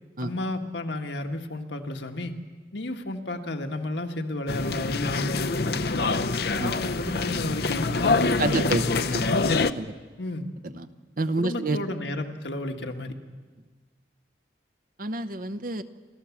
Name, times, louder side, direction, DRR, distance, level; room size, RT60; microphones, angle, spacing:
voice 1, 0.2-2.4 2.7-6.1 6.6-9.4 10.2-10.5 11.4-13.1, left 1 dB, 75° left, 4 dB, 1.6 m, -33 dB
sound 1, 4.5-9.7, left 3 dB, 60° left, 0.7 m, -25 dB
voice 2, 8.4-8.8 9.1-9.2 9.8-9.9 10.6-10.9 11.2-11.8 15.0-15.8, right 2 dB, 50° right, 12 dB, 0.9 m, -28 dB
28.5 x 14.0 x 7.2 m, 1.4 s
head